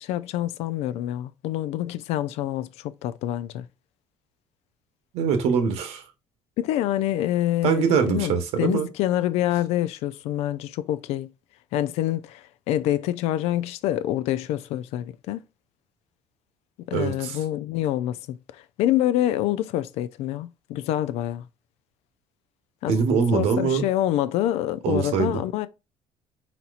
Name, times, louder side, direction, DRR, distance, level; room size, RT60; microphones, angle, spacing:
voice 1, 0.0-3.7 6.6-11.3 11.7-15.4 16.9-21.5 22.8-23.0 23.3-25.7, left 13 dB, 80° left, 0.4 m, -26 dB
voice 2, 5.1-6.0 7.6-8.9 16.9-17.4 22.9-23.8 24.8-25.3, right 6 dB, 80° right, 1.1 m, -23 dB
4.2 x 4.2 x 2.5 m
cardioid pair, 110°, 11 cm